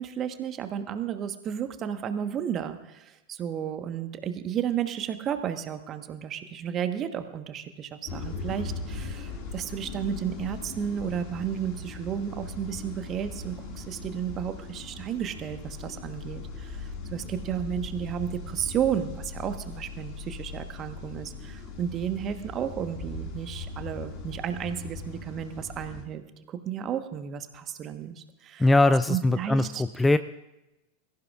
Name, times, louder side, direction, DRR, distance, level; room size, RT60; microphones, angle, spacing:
voice 1, 0.0-28.7 29.1-29.8, right 9 dB, 30° right, 8 dB, 1.3 m, -33 dB
sound 1, 8.0-26.0, left 4 dB, 45° left, 2.2 m, -39 dB
voice 2, 28.6-29.7 30.0-30.2, left 2 dB, 10° left, 13 dB, 0.4 m, -20 dB
23.5 x 14.5 x 2.5 m, 0.97 s
figure-of-eight pair, 90°, 0 cm